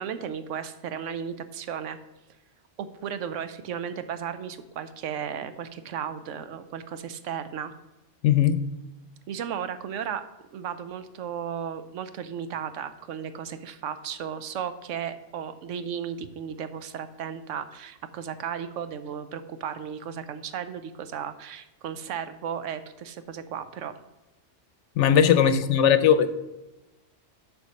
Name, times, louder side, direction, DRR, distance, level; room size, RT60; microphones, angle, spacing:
voice 1, 0.0-2.0 2.8-7.7 9.3-10.2 10.5-23.9 25.3-25.5, right 8 dB, 85° right, 11 dB, 1.0 m, -35 dB
voice 2, 8.2-8.6 25.0-26.3, left 8 dB, 75° left, 12 dB, 0.9 m, -19 dB
7.0 x 4.5 x 6.3 m, 1.0 s
omnidirectional pair, 1.3 m